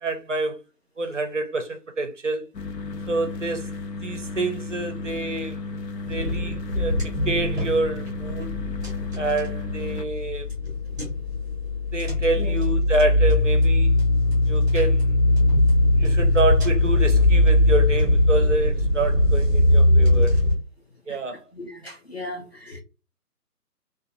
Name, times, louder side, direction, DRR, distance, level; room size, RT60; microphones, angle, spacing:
voice 1, 0.0-0.6 1.0-2.5 3.1-3.7 4.0-5.6 6.1-8.5 9.2-10.5 11.9-13.9 14.5-15.2 16.0-20.4 21.1-21.4, right 2 dB, 50° right, 0.4 m, -27 dB
sound 1, 2.5-10.0, left 3 dB, 85° left, 0.8 m, -34 dB
sound 2, 6.1-20.5, left 1 dB, 10° right, 0.7 m, -20 dB
voice 2, 21.5-22.8, left 1 dB, 45° left, 0.4 m, -37 dB
2.6 x 2.2 x 2.5 m
figure-of-eight pair, 155°, 48 cm